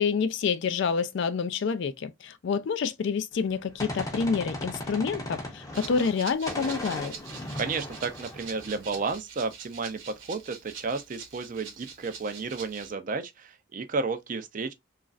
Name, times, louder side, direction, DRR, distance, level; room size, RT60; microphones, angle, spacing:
voice 1, 0.0-7.1, left 5 dB, 55° left, 0.3 m, -28 dB
Gunshot gunfire, 3.4-6.2 6.5-9.2, left 1 dB, 15° left, 0.6 m, -37 dB
Rattle (instrument), 5.7-12.9, right 6 dB, 65° right, 1.0 m, -45 dB
voice 2, 7.5-14.7, right 4 dB, 40° right, 0.4 m, -32 dB
3.0 x 2.4 x 2.4 m
head